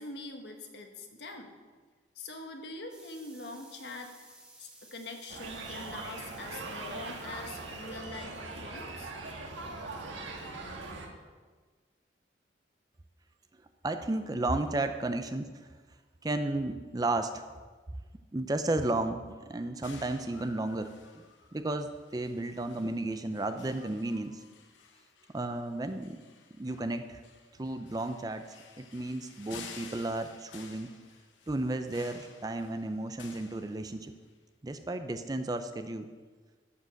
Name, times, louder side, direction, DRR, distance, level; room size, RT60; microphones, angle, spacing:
voice 1, 0.0-1.5 2.1-4.3 4.6-9.1, left 2 dB, 65° left, 4 dB, 1.3 m, -44 dB
sound 1, 2.9-8.0, right 1 dB, 5° right, 1.2 m, -56 dB
sound 2, 5.3-11.1, right 3 dB, 85° right, 1.4 m, -41 dB
voice 2, 13.8-15.5 16.2-17.4 18.3-21.2 21.5-24.4 25.3-26.2 26.5-27.2 27.6-28.5 28.8-30.9 31.5-34.1 34.6-36.1, right 2 dB, 20° right, 9 dB, 0.4 m, -33 dB
sound 3, 19.8-34.3, left 5 dB, 80° left, 0.9 m, -53 dB
13.5 x 5.1 x 6.3 m, 1.4 s
head